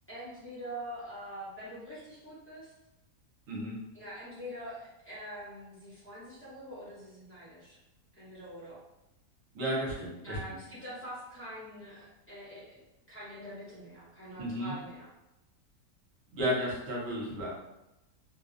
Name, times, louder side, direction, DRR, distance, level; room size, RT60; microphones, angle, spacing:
voice 1, 0.1-2.7 3.9-7.8 8.2-8.8 10.2-12.8 13.1-15.1, equal, 10° left, -10 dB, 0.7 m, -44 dB
voice 2, 3.5-3.8 9.5-10.6 14.4-14.7 16.3-17.5, equal, 65° right, -3 dB, 1.1 m, -33 dB
2.6 x 2.1 x 2.4 m, 0.91 s
omnidirectional pair, 1.5 m